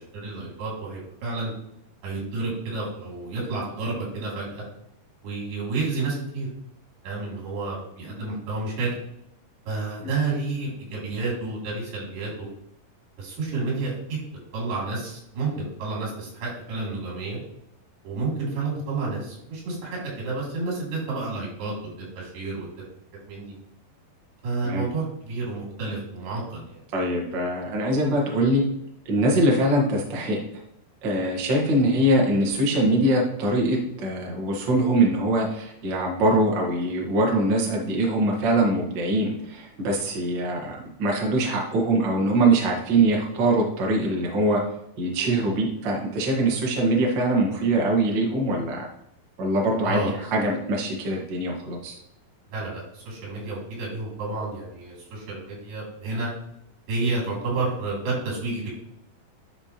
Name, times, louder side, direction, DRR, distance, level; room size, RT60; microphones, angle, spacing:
voice 1, 0.0-1.5 2.0-4.6 5.2-6.5 7.0-8.9 9.7-12.5 13.2-14.2 14.5-17.4 18.0-22.7 23.3-23.5 24.4-26.8 49.8-50.1 52.5-56.3 56.9-58.7, right 3 dB, 85° right, -4 dB, 4.8 m, -30 dB
voice 2, 26.9-28.6 29.1-30.4 31.0-44.6 45.0-48.9 49.4-51.9, right 1 dB, 55° right, -1 dB, 1.2 m, -23 dB
9.9 x 5.1 x 3.0 m, 0.77 s
omnidirectional pair, 4.5 m